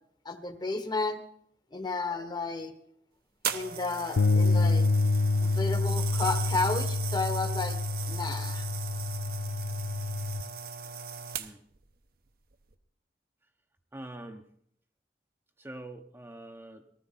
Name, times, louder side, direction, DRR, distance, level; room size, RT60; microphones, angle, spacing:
voice 1, 0.2-1.2 1.7-2.7 3.5-4.9 5.4-7.8 8.1-8.7, left 3 dB, 25° left, 8 dB, 1.1 m, -32 dB
sound 1, 3.4-11.8 12.5-12.7, right 8 dB, 55° right, 0.9 m, -38 dB
sound 2, 4.2-10.4, left 3 dB, 85° left, 0.4 m, -27 dB
voice 2, 13.9-14.4 15.6-16.8, right 1 dB, 15° right, 4 dB, 0.8 m, -44 dB
18.5 x 13.5 x 4.1 m, 0.67 s
head